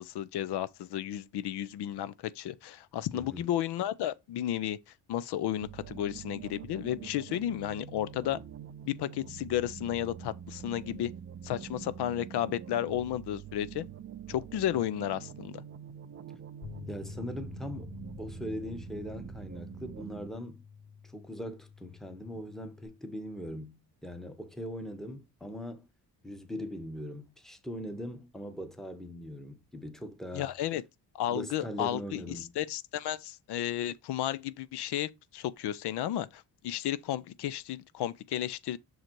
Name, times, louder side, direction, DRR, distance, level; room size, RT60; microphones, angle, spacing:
voice 1, 0.0-4.8 5.1-8.4 8.9-11.1 11.4-13.8 14.3-15.5 30.3-30.8 31.1-38.8, left 11 dB, 75° left, 0.5 m, -33 dB
voice 2, 3.1-3.5 16.9-20.6 21.0-25.9 26.2-30.5 31.3-32.5, equal, ahead, 0.9 m, -41 dB
sound 1, 5.6-20.3, right 8 dB, 35° right, 0.5 m, -45 dB
sound 2, 16.6-22.9, left 6 dB, 40° left, 2.5 m, -48 dB
6.5 x 3.9 x 4.4 m
cardioid pair, 155°, 40 cm